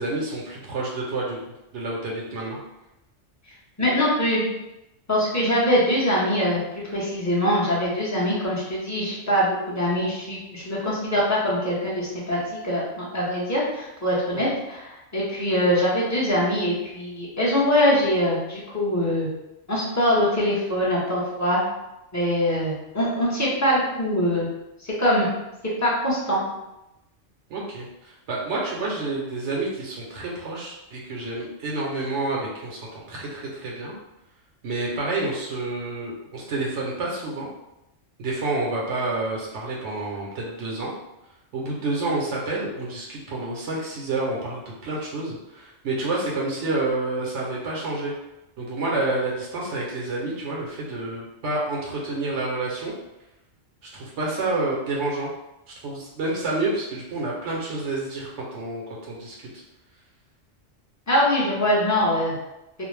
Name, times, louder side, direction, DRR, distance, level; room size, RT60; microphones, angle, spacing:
voice 1, 0.0-1.4 1.7-2.6 14.3-14.6 27.5-33.9 34.6-37.5 38.2-40.9 41.5-48.1 48.6-52.9 53.8-55.3 55.7-59.5, right 2 dB, 75° right, -3 dB, 0.9 m, -29 dB
voice 2, 3.8-4.4 5.1-12.4 12.6-19.3 19.7-21.6 22.1-24.5 24.8-25.3 25.8-26.4 61.1-62.4, equal, 20° left, -7 dB, 0.6 m, -23 dB
2.5 x 2.0 x 3.1 m, 0.92 s
omnidirectional pair, 1.2 m